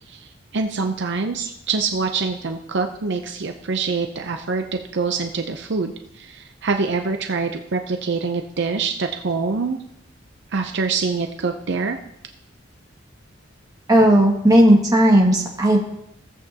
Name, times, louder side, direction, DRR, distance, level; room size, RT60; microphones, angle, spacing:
voice 1, 0.1-9.8 10.5-12.0, right 4 dB, 65° right, 5 dB, 0.6 m, -25 dB
voice 2, 13.9-15.8, right 1 dB, 20° right, -1 dB, 2.0 m, -14 dB
16.5 x 8.2 x 2.9 m, 0.77 s
head